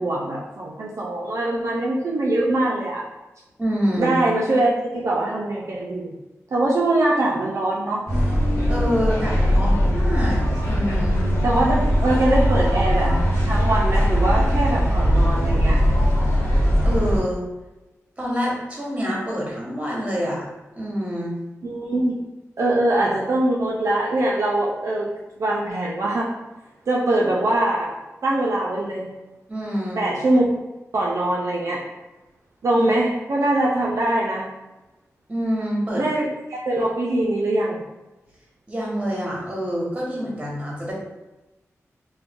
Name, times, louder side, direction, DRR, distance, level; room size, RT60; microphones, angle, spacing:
voice 1, 0.0-3.0 4.0-6.1 6.5-8.1 9.7-9.8 11.4-13.2 13.4-15.9 21.6-22.2 22.6-25.1 25.4-26.3 26.9-27.9 28.2-29.1 30.0-30.4 30.9-31.8 32.6-34.5 35.9-37.8, right 1 dB, 65° right, -4 dB, 0.5 m, -22 dB
voice 2, 3.6-4.2 8.7-11.2 16.8-17.4 18.2-20.4 20.8-21.4 29.5-30.1 32.8-32.9 35.3-36.0 38.7-40.9, equal, 25° right, -5 dB, 1.1 m, -26 dB
sound 1, 8.1-17.2, equal, 65° left, 1.0 m, -20 dB
2.5 x 2.2 x 3.5 m, 1.0 s
wide cardioid pair, 75°, 5 cm